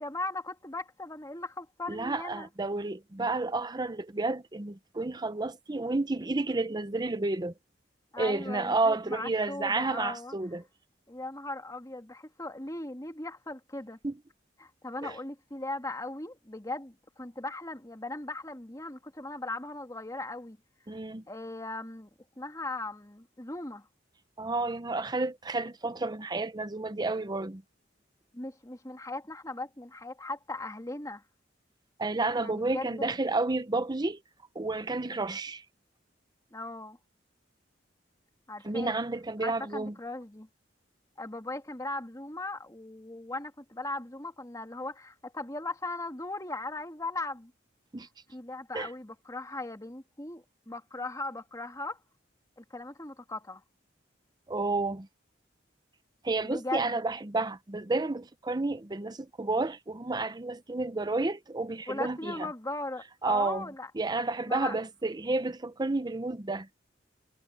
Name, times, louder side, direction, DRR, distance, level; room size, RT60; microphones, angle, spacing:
voice 1, 0.0-2.5 8.1-10.3 11.1-14.0 14.6-20.6 21.3-22.1 22.4-23.9 28.3-31.2 32.4-33.1 36.5-37.0 38.5-39.0 39.4-40.5 41.2-47.5 48.3-52.0 52.6-53.6 56.4-57.0 61.9-63.9 64.5-64.8, left 2 dB, 20° left, 2.4 m, -38 dB
voice 2, 1.9-7.5 8.2-10.6 14.0-14.1 15.0-15.2 20.9-21.2 24.4-27.6 32.0-34.2 34.5-35.6 38.6-39.9 47.9-48.1 48.7-48.9 54.5-55.1 56.2-62.5 63.2-63.7 63.9-66.7, right 3 dB, 25° right, 0.8 m, -31 dB
head